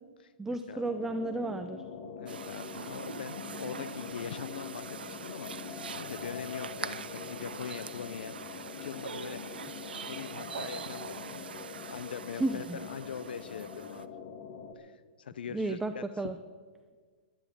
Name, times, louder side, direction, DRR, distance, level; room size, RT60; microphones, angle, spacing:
voice 1, 0.4-1.8 12.3-12.8 15.5-16.4, right 2 dB, 5° right, 8 dB, 0.6 m, -33 dB
sound 1, 0.8-14.7, left 6 dB, 45° left, 1.8 m, -44 dB
voice 2, 2.2-9.7 10.1-11.4 11.9-14.1 14.8-16.0, left 7 dB, 80° left, 15 dB, 0.6 m, -42 dB
sound 2, 2.3-14.0, right 7 dB, 85° right, 0.8 m, -43 dB
12.0 x 11.5 x 8.6 m, 1.5 s
hypercardioid pair, 135°, 5 cm